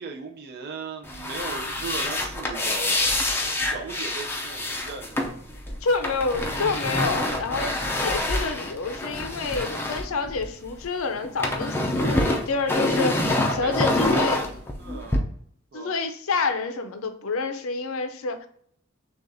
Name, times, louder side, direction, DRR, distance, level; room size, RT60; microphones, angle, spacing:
voice 1, 0.0-5.4 13.5-14.3 14.8-15.2 15.7-15.9, right 4 dB, 45° right, 3 dB, 0.5 m, -37 dB
sound 1, 1.0-10.8 11.1-15.2, left 1 dB, 10° left, 0.5 m, -26 dB
voice 2, 5.8-13.3 13.6-14.4 15.7-18.5, left 4 dB, 70° left, 8 dB, 0.6 m, -28 dB
6.4 x 2.4 x 2.6 m, 0.65 s
head